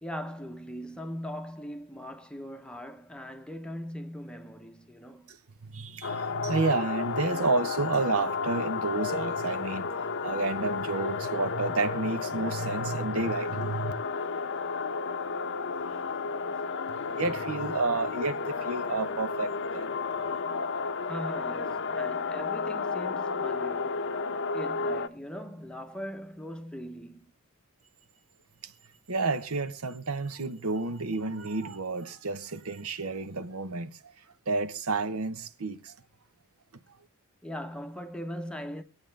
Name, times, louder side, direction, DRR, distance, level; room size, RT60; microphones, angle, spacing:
voice 1, 0.0-5.3 21.0-24.1 24.5-27.3 37.4-38.8, equal, 5° left, 0.8 m, -40 dB
voice 2, 5.6-9.9 10.2-13.9 16.9-19.9 29.1-34.1 34.5-35.9, right 3 dB, 70° right, 0.9 m, -30 dB
sound 1, 6.0-25.1, left 4 dB, 55° left, 0.7 m, -32 dB
24.5 x 8.9 x 3.3 m
head